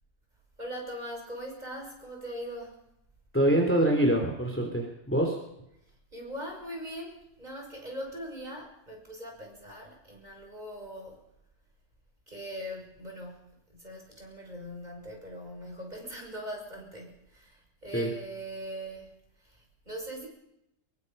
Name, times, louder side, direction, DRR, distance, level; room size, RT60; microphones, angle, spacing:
voice 1, 0.6-2.8 6.1-11.2 12.3-20.3, equal, 25° right, 1 dB, 6.2 m, -41 dB
voice 2, 3.3-5.4 17.9-18.1, right 1 dB, 5° left, 2 dB, 3.1 m, -25 dB
24.0 x 23.0 x 5.5 m, 0.82 s
omnidirectional pair, 1.8 m